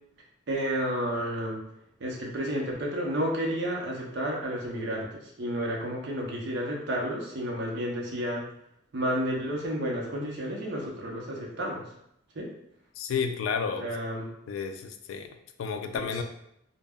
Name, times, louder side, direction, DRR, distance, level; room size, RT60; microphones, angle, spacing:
voice 1, 0.5-1.6 2.0-8.4 8.9-11.8 12.3-12.5 13.8-14.3 15.9-16.2, equal, 60° right, -2 dB, 0.6 m, -31 dB
voice 2, 13.0-13.9 14.5-15.3 15.6-16.2, left 6 dB, 80° left, 8 dB, 0.3 m, -31 dB
2.2 x 2.0 x 3.4 m, 0.77 s
head